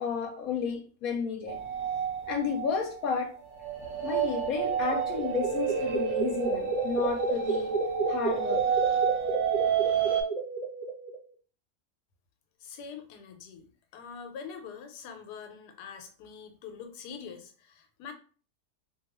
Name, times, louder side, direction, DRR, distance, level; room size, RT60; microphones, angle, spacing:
voice 1, 0.0-1.6 2.3-3.3 4.0-7.7 8.1-8.8, left 6 dB, 70° left, 3 dB, 1.0 m, -32 dB
sound 1, 1.5-10.2, right 8 dB, 65° right, 0.8 m, -30 dB
sound 2, 4.6-11.2, right 3 dB, 10° left, 0.7 m, -31 dB
voice 2, 12.6-18.1, left 6 dB, 90° left, 5 dB, 1.2 m, -44 dB
2.6 x 2.3 x 2.9 m, 0.41 s
omnidirectional pair, 1.7 m